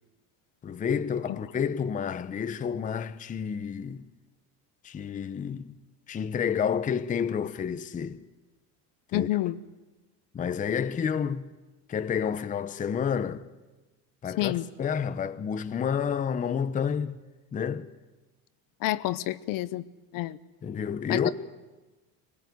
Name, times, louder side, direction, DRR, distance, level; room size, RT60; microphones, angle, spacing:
voice 1, 0.6-4.1 4.8-5.8 6.1-8.2 9.1-9.4 10.3-11.4 11.9-13.4 14.2-17.2 17.5-17.9 20.6-21.3, left 7 dB, 15° left, 0.7 m, -30 dB
voice 2, 9.1-9.6 14.4-14.6 18.8-19.8 20.1-20.4 21.1-21.2, left 16 dB, 45° left, 0.8 m, -28 dB
23.0 x 18.5 x 9.4 m
supercardioid pair, 135°, 47 cm